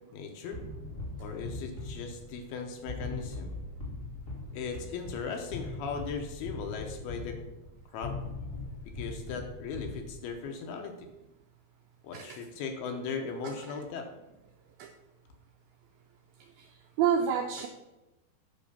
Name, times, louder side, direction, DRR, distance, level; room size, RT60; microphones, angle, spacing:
voice 1, 0.1-0.6 1.2-3.5 4.5-7.4 7.9-8.2 9.0-11.1 12.0-14.1, left 5 dB, 75° left, 4 dB, 2.6 m, -38 dB
sound 1, 0.5-10.5, left 2 dB, 40° left, 1.2 m, -41 dB
voice 2, 17.0-17.7, right 8 dB, 85° right, 4 dB, 2.1 m, -28 dB
8.6 x 5.5 x 5.6 m, 1.0 s
omnidirectional pair, 4.9 m